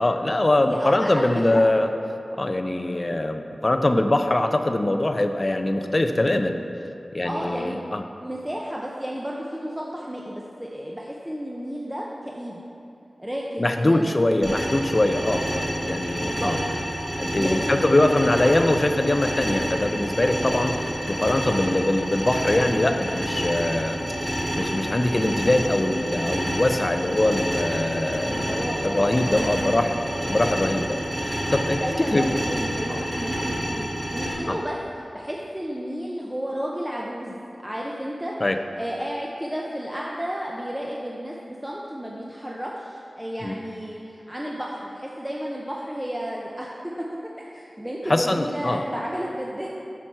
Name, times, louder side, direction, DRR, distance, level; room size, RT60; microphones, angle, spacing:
voice 1, 0.0-1.9 2.4-6.6 7.1-8.0 13.6-16.6 17.2-24.0 24.6-30.0 30.3-32.3 32.9-33.0 34.5-34.6 38.4-38.6 43.4-43.5 48.1-48.8, left 1 dB, 35° left, 7 dB, 0.5 m, -23 dB
voice 2, 0.6-1.7 7.2-7.8 8.2-12.6 13.2-14.4 16.2-16.5 17.3-18.4 28.3-29.7 31.8-38.4 38.7-46.7 47.0-47.1 47.4-49.7, equal, 10° right, -3 dB, 0.7 m, -32 dB
sound 1, 14.4-34.3, equal, 45° right, 2.1 m, -28 dB
8.8 x 5.9 x 4.6 m, 2.8 s
wide cardioid pair, 65°, 0 cm